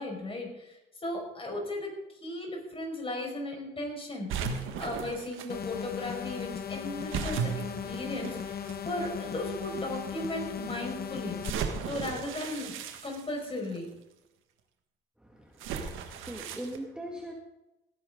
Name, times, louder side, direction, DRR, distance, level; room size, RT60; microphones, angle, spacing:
voice 1, 0.0-1.9 2.2-7.5 7.8-8.6 8.8-11.4 11.9-12.7 13.0-13.9, left 1 dB, 30° left, 1 dB, 5.2 m, -36 dB
sound 1, 4.3-5.5 7.1-8.7 9.5-9.6 11.4-13.8 15.6-16.8, right 6 dB, 90° right, 1.5 m, -36 dB
sound 2, 5.5-11.5, left 7 dB, 50° left, 1.1 m, -37 dB
voice 2, 15.2-17.3, right 1 dB, 5° right, 0 dB, 1.9 m, -41 dB
18.0 x 10.5 x 3.8 m, 0.95 s
cardioid pair, 90°, 20 cm